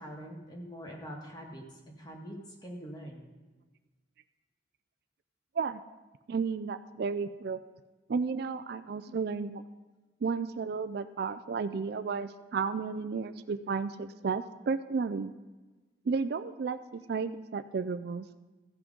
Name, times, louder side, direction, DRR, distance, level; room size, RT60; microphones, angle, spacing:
voice 1, 0.0-2.4 2.6-3.2 9.0-9.2, equal, 20° left, -1 dB, 1.8 m, -44 dB
voice 2, 6.3-7.6 8.1-9.6 10.2-15.3 16.1-18.2, right 5 dB, 55° right, 12 dB, 0.4 m, -33 dB
15.0 x 6.0 x 5.2 m, 1.2 s
head